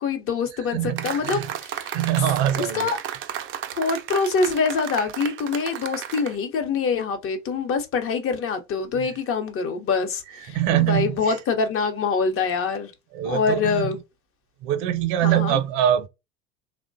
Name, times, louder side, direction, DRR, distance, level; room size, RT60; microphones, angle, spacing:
voice 1, 0.0-2.0 2.4-3.0 3.7-12.9 13.2-14.0 15.2-15.6, left 5 dB, 35° left, 0.8 m, -25 dB
voice 2, 0.7-1.5 1.9-2.9 9.0-9.1 10.5-11.4 13.1-13.9 14.6-16.1, right 11 dB, 65° right, 0.7 m, -23 dB
sound 1, 1.0-6.3, right 10 dB, 35° right, 0.4 m, -33 dB
3.1 x 2.1 x 2.5 m
hypercardioid pair, 95°, 36 cm